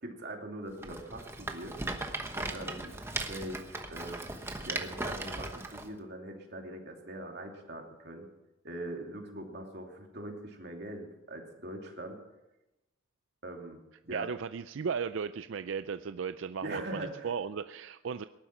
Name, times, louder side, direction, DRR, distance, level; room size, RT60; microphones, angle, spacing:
voice 1, 0.0-1.8 2.3-2.9 3.2-4.2 4.6-8.3 8.6-12.2 13.4-14.3 16.6-17.3, right 1 dB, 50° right, 2 dB, 2.7 m, -42 dB
Rattle, 0.8-5.9, right 2 dB, 10° right, 1.1 m, -38 dB
voice 2, 14.1-18.2, right 6 dB, 70° right, 11 dB, 0.4 m, -36 dB
19.0 x 11.5 x 6.0 m, 0.97 s
head